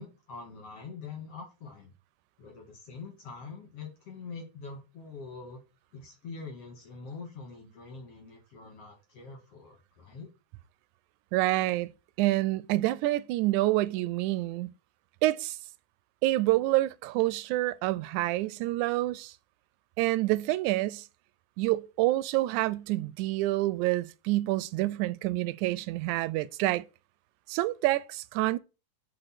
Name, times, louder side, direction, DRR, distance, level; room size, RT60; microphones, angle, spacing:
voice 1, 0.0-1.9 2.4-5.6 5.9-10.3, left 4 dB, 55° left, 2.5 m, -44 dB
voice 2, 11.3-11.9 12.2-14.7 15.2-15.6 16.2-19.3 20.0-21.1 21.6-26.8 27.5-28.6, right 17 dB, 80° right, 1.9 m, -27 dB
7.7 x 4.7 x 4.1 m
omnidirectional pair, 3.5 m